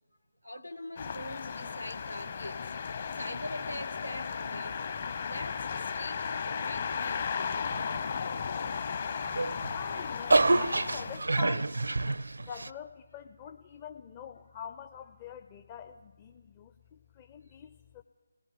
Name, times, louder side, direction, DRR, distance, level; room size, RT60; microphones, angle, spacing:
voice 1, 0.4-2.6 3.2-4.9 5.2-8.7 17.4-17.5, left 1 dB, 90° left, 4 dB, 1.7 m, -43 dB
sound 1, 1.0-11.2, left 6 dB, 40° left, 1.0 m, -35 dB
sound 2, 9.2-12.7, right 2 dB, 65° right, 0.5 m, -27 dB
voice 2, 9.7-11.7 12.5-18.0, left 8 dB, 20° left, 7 dB, 0.5 m, -45 dB
27.5 x 18.5 x 5.3 m, 1.2 s
figure-of-eight pair, 150°, 0 cm